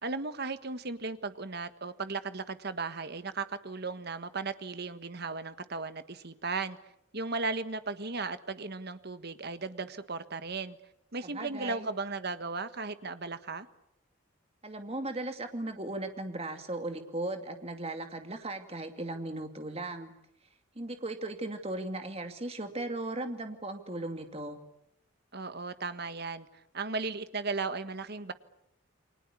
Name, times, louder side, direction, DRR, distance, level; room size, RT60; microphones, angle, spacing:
voice 1, 0.0-6.8 7.1-10.8 11.1-13.7 25.3-26.5 26.7-28.3, right 3 dB, 50° right, 1.5 m, -36 dB
voice 2, 11.2-11.9 14.6-20.1 20.8-24.6, right 2 dB, 30° right, 2.4 m, -37 dB
29.5 x 23.5 x 8.5 m
head